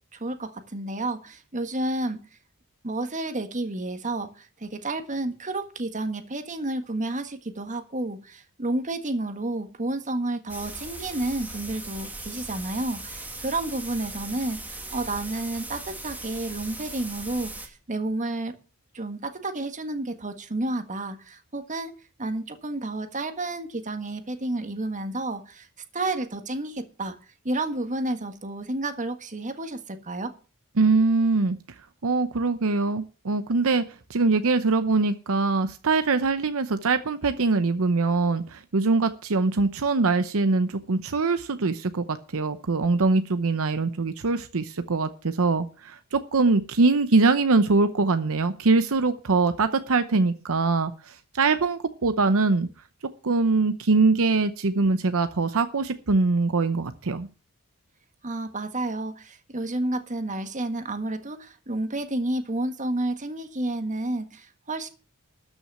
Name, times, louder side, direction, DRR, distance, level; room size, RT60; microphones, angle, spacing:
voice 1, 0.1-2.2 2.8-18.5 18.9-21.9 22.2-25.7 25.9-27.2 27.4-30.3 58.2-64.9, right 2 dB, 35° right, 8 dB, 1.6 m, -30 dB
sound 1, 10.5-17.7, right 2 dB, 10° right, 1.8 m, -39 dB
voice 2, 30.8-31.6 32.0-33.8 34.1-52.7 53.2-57.3, right 3 dB, 70° right, 10 dB, 0.8 m, -23 dB
13.0 x 6.2 x 7.5 m, 0.35 s
head